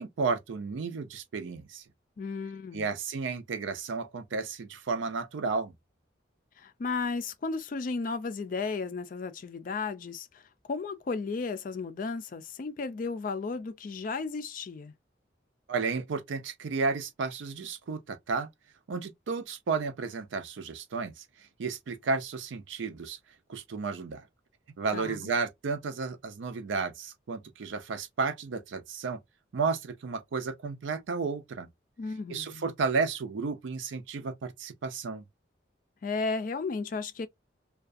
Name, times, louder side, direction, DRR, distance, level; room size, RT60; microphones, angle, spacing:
voice 1, 0.0-1.8 2.7-5.7 15.7-18.5 18.9-21.2 21.6-23.2 23.5-24.3 24.8-29.2 29.5-31.7 32.3-35.2, right 4 dB, 80° right, 0.4 m, -32 dB
voice 2, 2.2-2.9 6.6-14.9 24.9-25.3 32.0-32.7 36.0-37.3, left 4 dB, 45° left, 0.3 m, -34 dB
2.4 x 2.2 x 2.5 m
head